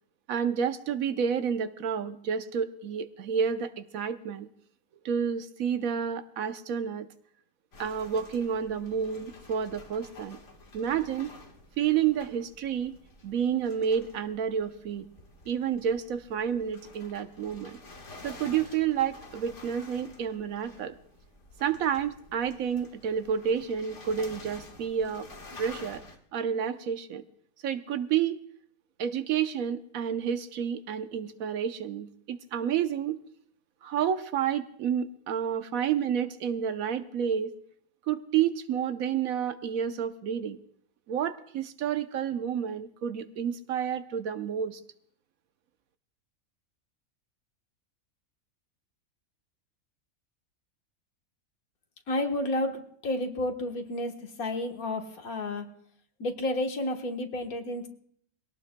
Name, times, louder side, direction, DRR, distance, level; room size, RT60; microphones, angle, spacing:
voice 1, 0.3-4.5 5.0-7.1 7.8-10.4 10.7-11.3 11.8-13.0 13.2-15.1 15.5-17.8 18.2-20.9 21.6-25.3 25.6-26.0 26.3-27.2 27.6-28.4 29.0-33.2 33.8-37.5 38.1-40.6 41.1-44.8, right 8 dB, 80° right, 10 dB, 1.2 m, -30 dB
sound 1, 7.7-26.2, left 2 dB, 55° left, 1.8 m, -50 dB
voice 2, 52.1-55.7 56.2-57.9, left 1 dB, 90° left, 4 dB, 1.8 m, -31 dB
22.5 x 17.5 x 2.2 m, 0.64 s
omnidirectional pair, 1.5 m